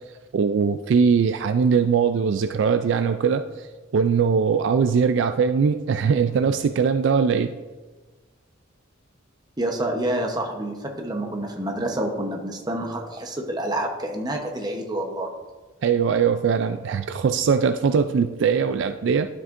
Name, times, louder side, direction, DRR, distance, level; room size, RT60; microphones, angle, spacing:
voice 1, 0.3-3.7 3.9-7.5 15.8-19.3, right 6 dB, 60° right, 8 dB, 0.3 m, -21 dB
voice 2, 9.6-15.3, right 1 dB, 20° right, 2 dB, 0.9 m, -28 dB
12.0 x 6.1 x 2.5 m, 1.3 s
head